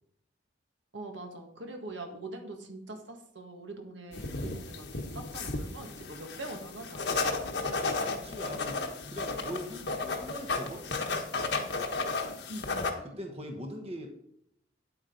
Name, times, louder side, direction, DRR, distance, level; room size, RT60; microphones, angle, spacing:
voice 1, 0.9-7.3 12.3-13.2, right 2 dB, 75° right, 3 dB, 1.8 m, -43 dB
sound 1, 4.1-12.9, left 3 dB, 60° left, 1.2 m, -34 dB
voice 2, 8.1-10.9 13.0-14.1, equal, 30° right, 2 dB, 1.1 m, -41 dB
9.1 x 8.7 x 3.9 m, 0.74 s
head